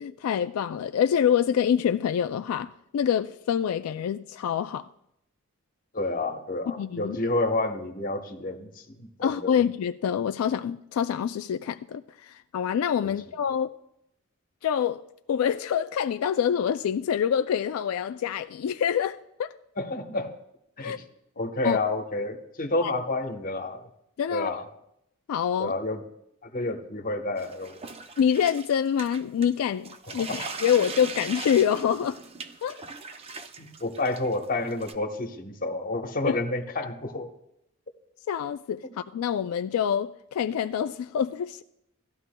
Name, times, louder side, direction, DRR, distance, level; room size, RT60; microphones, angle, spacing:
voice 1, 0.0-4.9 6.8-7.2 9.2-13.8 14.6-15.0 15.3-19.5 20.8-21.0 21.6-21.8 22.8-22.9 24.2-24.5 25.3-25.7 28.2-32.2 32.6-32.8 36.2-36.4 38.3-41.6, left 8 dB, 80° left, 0.3 m, -26 dB
voice 2, 5.9-9.6 13.0-13.1 19.8-20.3 20.8-20.9 21.4-23.9 24.3-24.7 25.6-26.0 26.4-27.8 30.2-30.4 33.6-37.3, left 2 dB, 40° left, 1.0 m, -29 dB
sound 1, 27.4-29.6 29.8-34.9, right 4 dB, 30° right, 0.5 m, -40 dB
17.0 x 12.5 x 2.2 m
head